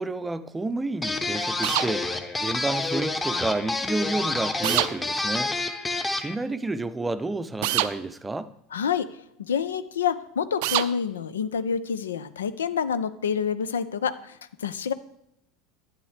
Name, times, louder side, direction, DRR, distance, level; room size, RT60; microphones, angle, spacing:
voice 1, 0.0-2.1 2.4-5.5 6.1-8.5, right 2 dB, 15° right, 0.6 m, -30 dB
sound 1, 1.0-6.3, left 2 dB, 15° left, 1.0 m, -28 dB
sound 2, 1.6-1.9 4.6-4.9 7.6-7.9 10.6-10.9, right 16 dB, 65° right, 0.4 m, -24 dB
voice 2, 8.7-9.1 9.5-14.1 14.6-14.9, left 7 dB, 80° left, 0.5 m, -27 dB
11.0 x 9.0 x 3.3 m
hypercardioid pair, 80°, 0 cm